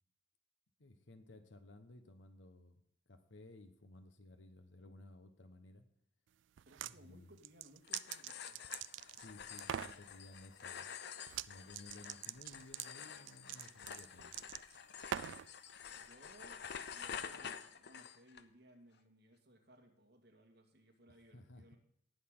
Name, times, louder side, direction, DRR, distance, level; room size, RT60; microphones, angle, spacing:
voice 1, 0.8-2.8 3.1-5.9 6.8-7.3 9.1-10.9 11.5-14.4 21.3-21.8, left 2 dB, 85° left, 9 dB, 1.2 m, -57 dB
voice 2, 6.6-8.6 10.8-10.9 15.9-16.6 16.9-21.8, right 1 dB, 60° right, 3 dB, 2.1 m, -63 dB
sound 1, 6.6-7.0 7.4-9.3 9.6-10.0 11.3-11.5 11.7-15.5, right 11 dB, 85° right, 0.3 m, -43 dB
sound 2, 7.8-18.4, left 7 dB, 60° left, 0.6 m, -49 dB
18.5 x 6.7 x 3.8 m, 0.69 s
head